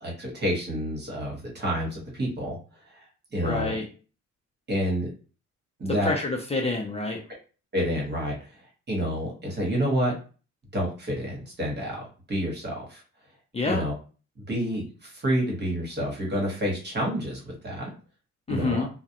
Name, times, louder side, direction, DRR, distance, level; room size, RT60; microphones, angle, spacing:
voice 1, 0.0-2.6 2.9-3.0 3.3-3.7 4.7-5.1 5.8-6.1 7.7-8.3 8.9-10.1 10.7-12.0 12.3-13.0 13.6-13.9 14.4-17.9 18.5-18.9, equal, 35° right, -2 dB, 1.1 m, -28 dB
voice 2, 3.4-3.8 6.0-7.2 13.5-13.8 18.5-18.9, left 3 dB, 20° left, 0 dB, 0.5 m, -27 dB
2.3 x 2.0 x 2.8 m, 0.37 s
cardioid pair, 90°, 30 cm